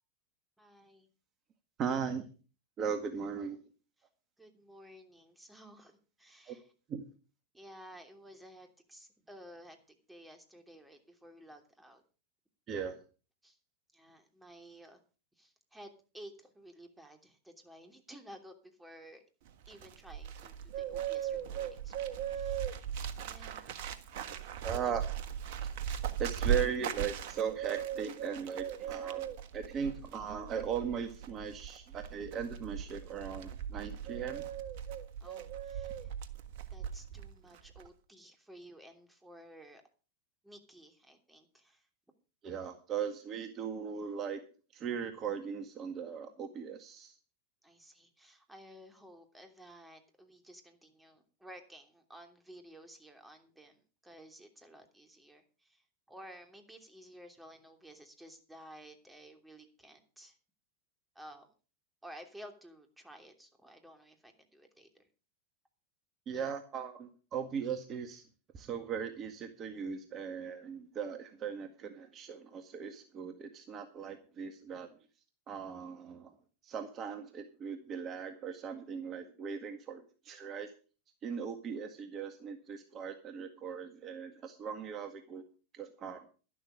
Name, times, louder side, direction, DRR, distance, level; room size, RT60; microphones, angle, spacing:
voice 1, 0.6-1.1 4.0-4.1 4.4-6.7 7.5-12.0 13.4-13.6 13.9-15.0 15.4-19.2 19.7-22.9 23.2-23.8 24.4-24.9 35.2-36.1 36.7-39.8 40.4-41.9 47.6-60.4 61.1-61.5 62.0-65.0 66.3-66.5, equal, 5° right, 5 dB, 3.0 m, -54 dB
voice 2, 1.8-2.3 2.8-3.6 6.5-6.6 6.9-7.1 12.7-13.0 24.6-25.0 25.6-25.7 26.2-34.5 42.4-44.4 44.7-47.1 66.3-68.2 68.5-74.9 75.5-76.3 76.6-80.7 81.2-85.4 85.7-86.2, right 7 dB, 35° right, 7 dB, 1.8 m, -38 dB
Bird, 19.5-37.3 37.5-37.9, right 9 dB, 60° right, 1.5 m, -38 dB
12.0 x 12.0 x 5.1 m, 0.36 s
hypercardioid pair, 95°, 0 cm